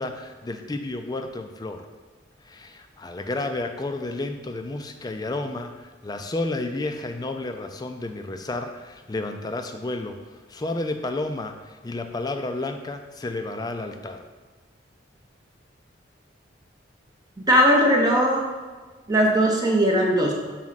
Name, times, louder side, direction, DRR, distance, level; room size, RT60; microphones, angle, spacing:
voice 1, 0.0-1.9 2.4-14.2, left 2 dB, 20° left, 6 dB, 0.4 m, -31 dB
voice 2, 17.4-18.5 19.1-20.3, equal, 20° right, -1 dB, 0.6 m, -19 dB
6.0 x 4.2 x 4.0 m, 1.4 s
head